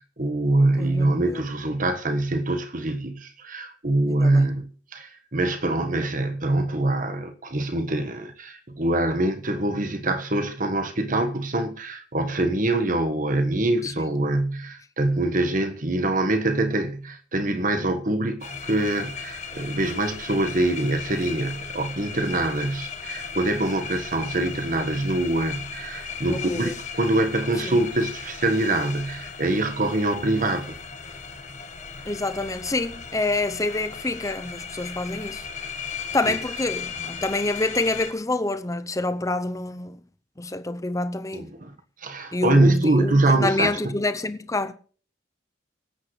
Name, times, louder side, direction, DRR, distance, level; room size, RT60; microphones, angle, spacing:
voice 1, 0.0-30.8 36.3-36.4 41.3-41.7 42.0-44.0, right 2 dB, 45° right, 1.4 m, -24 dB
voice 2, 0.8-1.4 4.1-4.5 13.8-14.1 26.2-26.7 27.6-27.8 32.1-35.5 36.1-40.0 40.4-41.5 42.3-44.7, left 2 dB, 15° left, 0.8 m, -27 dB
sound 1, 18.4-38.1, left 6 dB, 40° left, 1.5 m, -37 dB
24.5 x 8.7 x 3.2 m
head